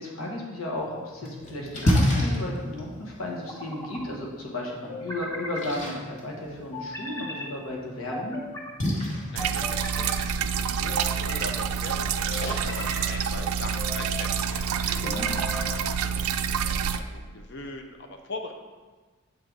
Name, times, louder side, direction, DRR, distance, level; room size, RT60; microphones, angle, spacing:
voice 1, 0.0-8.4 15.0-15.4, left 1 dB, 80° left, -2 dB, 1.2 m, -34 dB
Splash splatter, 0.8-13.8, left 1 dB, 35° left, 1.0 m, -32 dB
sound 1, 1.2-1.9 3.3-4.0 4.9-5.7 6.7-7.5 8.1-8.7 9.4-10.2 10.9-11.5 12.3-13.2 13.8-14.3 15.0-15.8, left 1 dB, 10° left, 0.7 m, -37 dB
voice 2, 9.3-15.1 15.7-18.5, left 2 dB, 50° left, 4 dB, 0.5 m, -40 dB
sound 2, 9.4-17.0, right 7 dB, 90° right, 0.3 m, -28 dB
7.4 x 3.9 x 4.6 m, 1.4 s
head